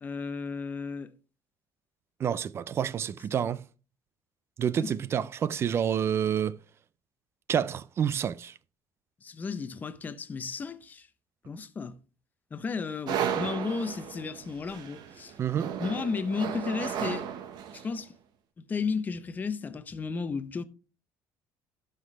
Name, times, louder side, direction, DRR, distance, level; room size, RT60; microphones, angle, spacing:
voice 1, 0.0-1.1 4.8-4.9 9.2-11.1 11.5-12.0 12.5-15.3 15.8-17.3 17.7-18.2 18.6-20.6, left 5 dB, 20° left, 0.6 m, -33 dB
voice 2, 2.2-3.6 4.6-6.6 7.5-8.5 15.4-15.7, right 8 dB, 30° right, 0.4 m, -28 dB
sound 1, 13.1-18.0, right 8 dB, 60° right, 1.1 m, -34 dB
12.0 x 5.8 x 3.3 m
cardioid pair, 155°, 8 cm